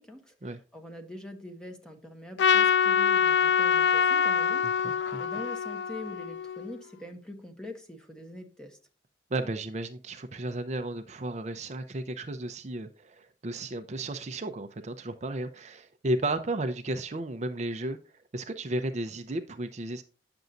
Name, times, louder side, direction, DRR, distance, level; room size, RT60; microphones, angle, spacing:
voice 1, 0.0-8.8, left 1 dB, 5° left, 1.3 m, -44 dB
Trumpet, 2.4-6.8, left 7 dB, 75° left, 0.3 m, -25 dB
voice 2, 4.6-5.2 9.3-18.0 18.3-20.0, right 2 dB, 40° right, 0.6 m, -33 dB
9.2 x 6.9 x 2.6 m
head